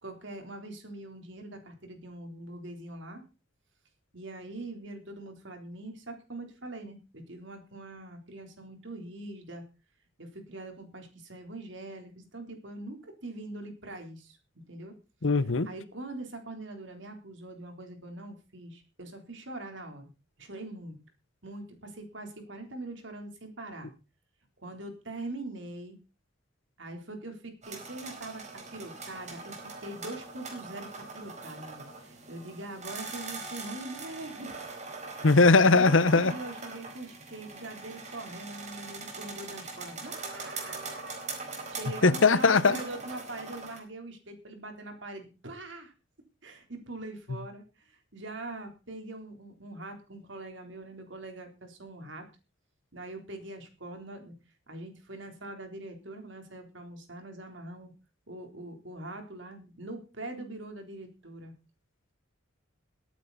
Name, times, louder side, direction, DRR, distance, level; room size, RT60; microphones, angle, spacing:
voice 1, 0.0-3.2 4.1-9.6 10.2-14.4 14.7-14.9 15.6-20.1 20.4-21.0 21.4-23.9 24.6-26.0 26.8-28.4 28.7-34.5 35.2-35.3 35.6-41.2 41.7-45.9 46.4-52.3 52.9-54.3 54.7-57.9 58.3-61.5, right 2 dB, 65° right, 3.7 m, -42 dB
voice 2, 15.2-15.7 35.2-36.3 42.0-42.8, left 3 dB, 70° left, 0.9 m, -20 dB
sound 1, 27.6-43.8, right 4 dB, 35° right, 4.4 m, -42 dB
21.0 x 9.4 x 4.1 m
head